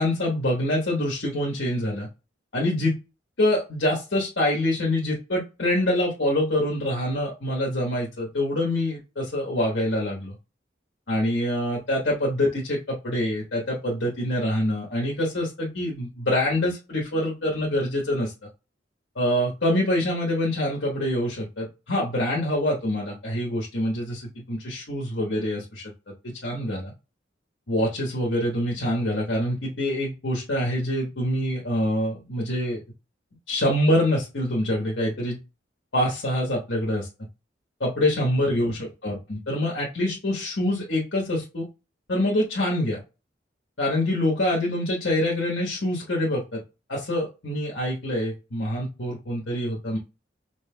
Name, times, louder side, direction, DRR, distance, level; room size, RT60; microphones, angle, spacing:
voice 1, 0.0-2.1 2.5-2.9 3.4-10.4 11.1-18.3 19.1-25.9 26.2-26.9 27.7-32.8 33.5-35.4 35.9-37.1 37.8-41.7 42.1-43.0 43.8-46.6 46.9-50.0, left 1 dB, 70° left, -2 dB, 1.2 m, -25 dB
5.3 x 3.0 x 2.2 m, 0.28 s
head